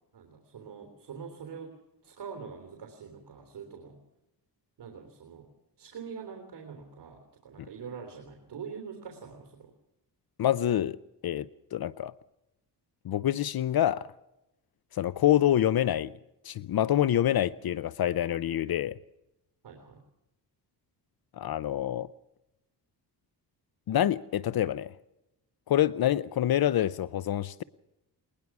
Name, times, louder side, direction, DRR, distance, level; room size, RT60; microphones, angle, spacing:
voice 1, 0.1-1.7 2.0-4.0 4.8-5.5 5.8-9.7 19.6-20.0, right 6 dB, 75° right, 3 dB, 3.4 m, -44 dB
voice 2, 10.4-11.0 11.2-12.1 13.0-14.1 14.9-16.1 16.4-19.0 21.4-22.1 23.9-24.9 25.7-27.6, left 11 dB, 60° left, 17 dB, 0.6 m, -26 dB
21.0 x 20.5 x 6.0 m, 0.91 s
wide cardioid pair, 125°, 41 cm